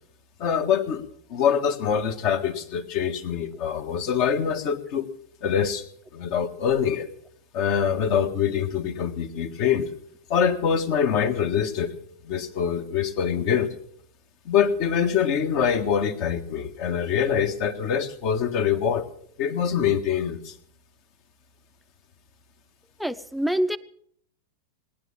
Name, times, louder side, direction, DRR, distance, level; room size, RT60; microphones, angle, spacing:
voice 1, 0.4-5.1 5.4-5.8 6.1-7.1 7.5-9.9 10.3-11.9 12.2-13.7 14.4-19.0 19.4-20.5, left 8 dB, 45° left, 1.6 m, -24 dB
voice 2, 23.0-23.8, equal, ahead, 0.8 m, -25 dB
19.0 x 10.5 x 7.2 m
figure-of-eight pair, 90°, 0 cm